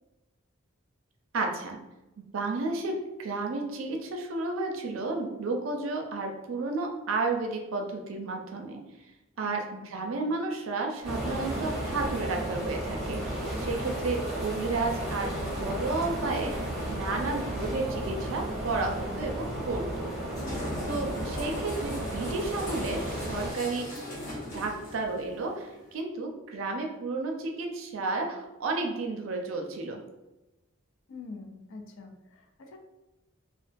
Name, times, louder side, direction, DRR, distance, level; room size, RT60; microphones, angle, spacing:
voice 1, 1.3-1.8 2.2-8.8 9.4-20.1 20.8-23.9 24.5-30.0, right 3 dB, 70° right, 2 dB, 0.4 m, -32 dB
voice 2, 9.4-9.8 20.8-21.0 31.1-32.8, left 4 dB, 60° left, 4 dB, 0.4 m, -45 dB
sound 1, 11.0-25.9, left 1 dB, 40° left, 0.8 m, -43 dB
sound 2, 11.0-23.5, right 1 dB, ahead, 0.7 m, -34 dB
2.4 x 2.2 x 2.5 m, 1.0 s
head